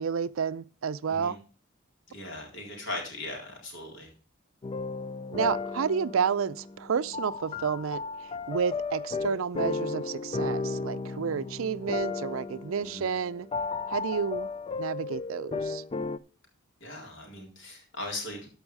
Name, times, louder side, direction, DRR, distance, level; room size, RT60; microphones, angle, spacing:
voice 1, 0.0-1.4 5.3-8.0 8.5-13.5 13.9-14.5 14.8-15.8, right 6 dB, 75° right, 0.5 m, -30 dB
voice 2, 2.1-4.1 12.8-13.1 16.8-18.5, left 2 dB, 65° left, 3.9 m, -39 dB
sound 1, 4.6-16.2, left 4 dB, 25° left, 0.4 m, -34 dB
13.5 x 5.5 x 4.8 m
head